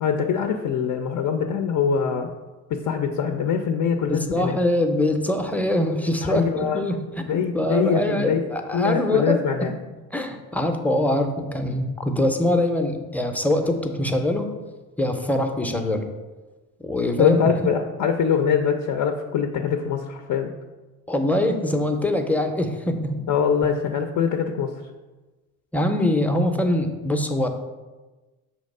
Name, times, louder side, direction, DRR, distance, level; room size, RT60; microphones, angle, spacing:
voice 1, 0.0-2.3 2.7-4.6 6.2-6.8 7.3-8.4 8.7-9.7 17.2-20.5 23.3-24.7, left 7 dB, 60° left, 5 dB, 0.6 m, -23 dB
voice 2, 4.1-9.4 10.1-14.5 15.0-16.0 16.8-17.4 21.1-23.2 23.6-23.7 25.7-27.5, left 1 dB, 5° left, 5 dB, 0.6 m, -23 dB
6.5 x 2.9 x 5.3 m, 1.2 s
cardioid pair, 105°, 36 cm